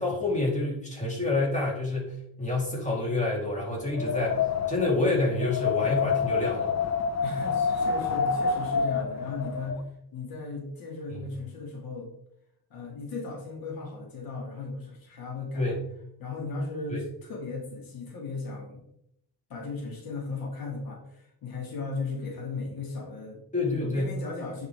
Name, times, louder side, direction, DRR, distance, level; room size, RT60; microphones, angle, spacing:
voice 1, 0.0-4.4 4.7-6.7 11.1-11.2 15.6-15.8 16.9-17.0 23.5-24.1, left 2 dB, 20° left, -3 dB, 3.6 m, -28 dB
Wind, 3.8-9.8, left 6 dB, 50° left, 1.0 m, -28 dB
voice 2, 7.2-9.8 10.1-12.1 12.7-15.7 16.2-18.8 19.5-23.4 23.7-24.7, left 3 dB, 85° left, -1 dB, 2.4 m, -36 dB
10.0 x 5.6 x 3.6 m, 0.75 s
cardioid pair, 95°, 35 cm